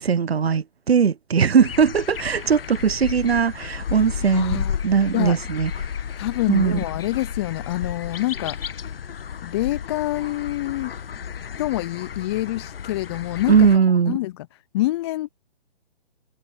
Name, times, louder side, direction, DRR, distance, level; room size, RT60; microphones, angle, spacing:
voice 1, 0.0-5.7 6.5-6.8 13.5-14.2, right 6 dB, 85° right, 0.9 m, -19 dB
sound 1, 1.6-13.8, left 7 dB, 70° left, 1.4 m, -33 dB
voice 2, 4.3-4.8 5.1-5.4 6.2-8.6 9.4-10.9 11.6-13.6 14.1-14.5 14.7-15.3, left 17 dB, 25° left, 0.6 m, -26 dB
hypercardioid pair, 135°, 30 cm